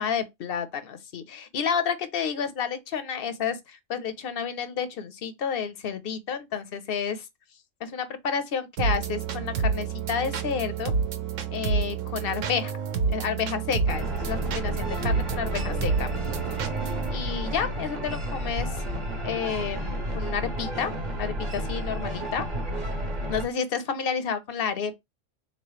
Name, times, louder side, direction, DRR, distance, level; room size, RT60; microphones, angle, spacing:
voice 1, 0.0-7.2 7.8-10.9 11.5-12.7 13.1-16.1 17.1-18.7 19.2-20.9 21.2-22.4 23.3-24.9, left 7 dB, 60° left, 0.7 m, -30 dB
sound 1, 8.8-17.1, right 5 dB, 80° right, 1.0 m, -29 dB
sound 2, 13.9-23.4, equal, 40° right, 0.9 m, -31 dB
4.0 x 3.0 x 3.0 m
omnidirectional pair, 1.3 m